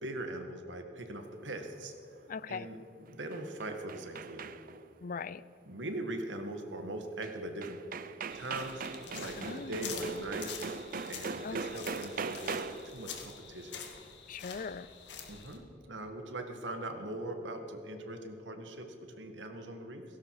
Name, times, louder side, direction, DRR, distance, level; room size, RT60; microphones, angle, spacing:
voice 1, 0.0-1.9 2.5-4.5 5.7-7.8 8.3-8.8 9.2-10.5 11.1-13.8 15.3-20.0, right 1 dB, 90° right, 5 dB, 1.9 m, -41 dB
voice 2, 2.3-2.7 5.0-5.4 9.4-10.0 11.4-11.9 14.3-14.9, left 5 dB, 50° left, 17 dB, 0.4 m, -40 dB
sound 1, 3.1-4.9 7.2-7.3 7.6-13.0, right 5 dB, 50° right, 0.6 m, -40 dB
sound 2, 8.3-15.6, left 6 dB, 70° left, 2.0 m, -46 dB
17.5 x 16.5 x 4.9 m, 3.0 s
head